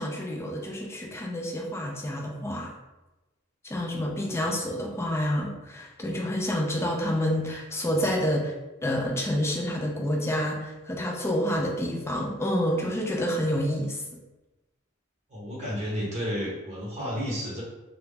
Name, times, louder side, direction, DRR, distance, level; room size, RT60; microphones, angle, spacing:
voice 1, 0.0-2.7 3.6-8.5 8.8-14.0, equal, 10° left, 0 dB, 0.3 m, -28 dB
voice 2, 15.3-17.6, equal, 35° right, -6 dB, 0.8 m, -32 dB
2.2 x 2.0 x 3.3 m, 1.1 s
head